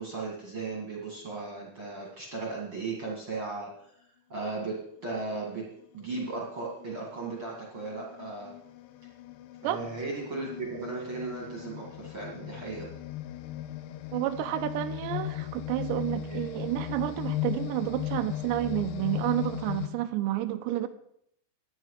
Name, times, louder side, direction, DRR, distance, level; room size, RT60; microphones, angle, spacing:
voice 1, 0.0-3.9 4.3-4.8 5.0-5.6 5.9-8.5 9.6-12.9 16.3-16.4, right 3 dB, 40° right, -2 dB, 2.3 m, -36 dB
sound 1, 5.3-5.5 6.2-19.9, left 12 dB, 85° left, 2.8 m, -37 dB
voice 2, 14.1-20.9, right 14 dB, 85° right, 8 dB, 3.0 m, -30 dB
16.0 x 11.0 x 4.9 m, 0.72 s
omnidirectional pair, 5.0 m